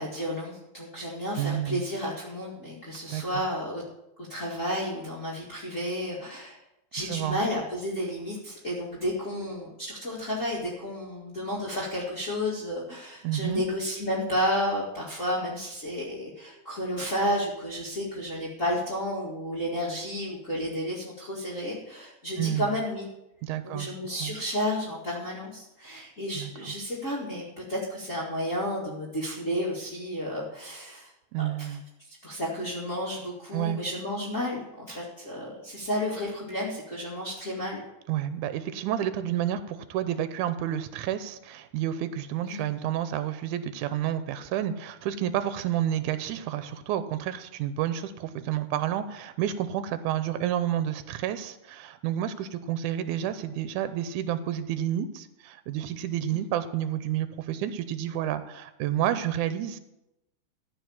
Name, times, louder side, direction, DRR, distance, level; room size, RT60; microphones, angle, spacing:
voice 1, 0.0-3.8 4.3-6.6 6.9-23.1 23.6-31.1 31.6-31.8 32.2-37.8 42.4-42.7 56.3-56.4, equal, 30° left, -6 dB, 1.9 m, -32 dB
voice 2, 1.4-1.8 3.1-3.2 7.1-7.4 13.2-13.6 22.4-22.7 23.4-23.9 24.2-24.3 26.0-26.1 26.4-26.7 31.3-31.8 33.5-33.8 38.1-59.8, right 11 dB, 85° right, 12 dB, 2.1 m, -30 dB
14.0 x 4.8 x 7.0 m, 0.89 s
omnidirectional pair, 3.5 m